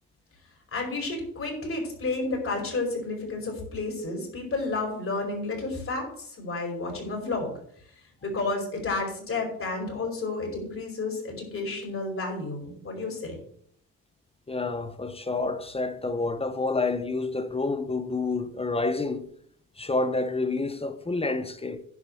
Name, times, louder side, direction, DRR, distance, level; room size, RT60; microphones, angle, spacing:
voice 1, 0.7-7.5 8.2-13.4, left 3 dB, 35° left, 5.3 m, -31 dB
voice 2, 14.5-19.3 19.8-21.8, left 3 dB, 15° left, 1.0 m, -28 dB
11.0 x 5.3 x 7.8 m
cardioid pair, 120°, 35 cm